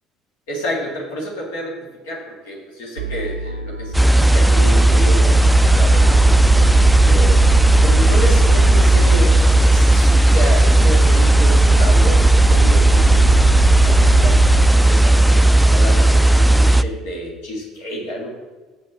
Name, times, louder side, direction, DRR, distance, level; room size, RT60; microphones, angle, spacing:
voice 1, 0.5-1.8 2.0-7.4 7.8-13.6 13.8-18.3, equal, 65° left, -2 dB, 2.1 m, -30 dB
sound 1, 3.0-14.7, right 8 dB, 85° right, 0.4 m, -25 dB
sound 2, 3.9-16.8, right 1 dB, ahead, 0.3 m, -13 dB
8.1 x 5.4 x 7.1 m, 1.3 s
figure-of-eight pair, 60°, 0 cm